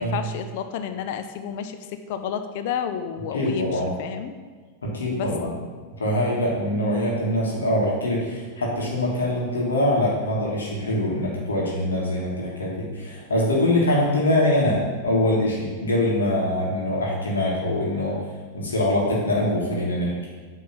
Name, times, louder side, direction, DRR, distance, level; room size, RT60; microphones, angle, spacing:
voice 1, 0.0-4.3 5.1-5.3, left 8 dB, 50° left, 8 dB, 0.6 m, -31 dB
voice 2, 3.3-3.9 4.8-5.5 6.0-18.1 18.5-20.3, left 1 dB, 70° left, -4 dB, 1.9 m, -23 dB
8.5 x 3.7 x 5.9 m, 1.5 s
figure-of-eight pair, 90°, 0 cm